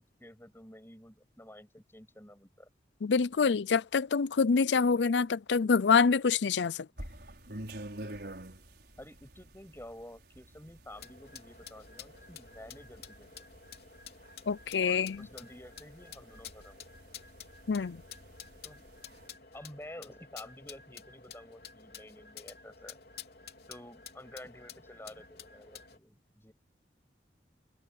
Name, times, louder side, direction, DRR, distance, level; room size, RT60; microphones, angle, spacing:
voice 1, 0.0-2.7 9.0-13.4 14.7-16.9 18.6-18.8 19.5-23.0 23.7-26.5, left 1 dB, 15° left, 6.5 m, -50 dB
voice 2, 3.0-6.9 14.5-15.3 17.7-18.0, left 5 dB, 80° left, 0.5 m, -26 dB
sound 1, 7.0-19.3, right 1 dB, 65° right, 5.8 m, -49 dB
sound 2, 10.9-26.0, left 7 dB, 60° left, 3.7 m, -51 dB
open air
head